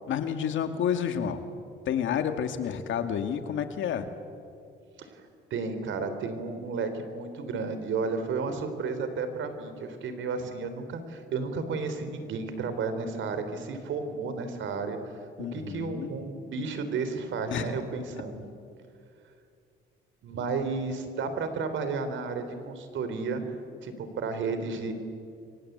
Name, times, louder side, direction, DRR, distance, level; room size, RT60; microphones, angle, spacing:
voice 1, 0.1-1.4 1.9-4.1 15.4-16.1 17.5-17.7, left 8 dB, 75° left, 7 dB, 2.4 m, -30 dB
voice 2, 5.5-15.0 15.4-18.4 20.2-23.4 23.8-24.9, right 4 dB, 75° right, 9 dB, 3.9 m, -32 dB
29.5 x 24.5 x 8.2 m, 2.4 s
cardioid pair, 90°, 20 cm